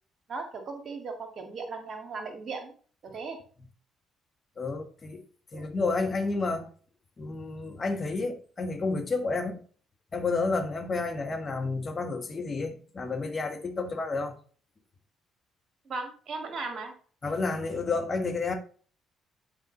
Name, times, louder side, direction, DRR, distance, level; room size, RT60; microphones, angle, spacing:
voice 1, 0.3-2.7 3.0-3.4 5.5-5.6 15.9-16.9, right 4 dB, 45° right, 1.9 m, -37 dB
voice 2, 4.6-5.2 5.5-6.7 7.2-9.6 10.1-14.4 17.2-18.5, left 3 dB, 35° left, 1.6 m, -30 dB
9.6 x 4.8 x 3.9 m
figure-of-eight pair, 45°, 0 cm